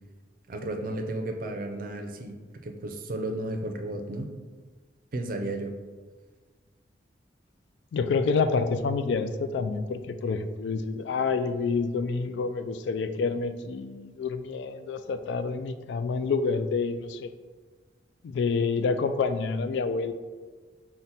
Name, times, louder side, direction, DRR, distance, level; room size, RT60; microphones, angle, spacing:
voice 1, 0.5-2.4 2.6-4.4 5.1-5.7, right 1 dB, 55° right, 5 dB, 0.5 m, -33 dB
voice 2, 7.9-17.3 18.2-20.1, left 4 dB, 80° left, 10 dB, 0.3 m, -28 dB
5.7 x 2.1 x 4.0 m, 1.4 s
head